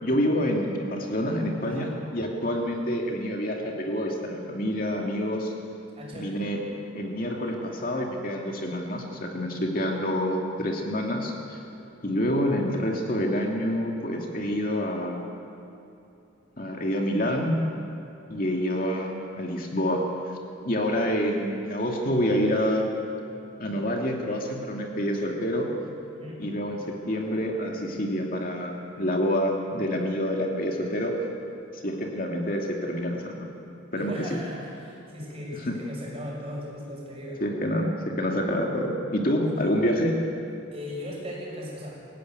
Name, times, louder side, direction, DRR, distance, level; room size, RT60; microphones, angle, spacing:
voice 1, 0.0-5.5 6.1-6.6 6.9-11.6 12.0-15.2 16.6-17.6 18.3-20.0 20.6-22.9 23.6-25.7 26.4-31.2 31.8-33.5 33.9-34.4 35.7-35.8 37.4-40.1, equal, 45° left, 0 dB, 2.5 m, -27 dB
voice 2, 5.9-6.4 26.1-26.4 33.9-37.4 39.5-39.7 40.7-42.1, equal, 30° right, -3 dB, 6.6 m, -38 dB
23.5 x 16.0 x 9.6 m, 2.9 s
head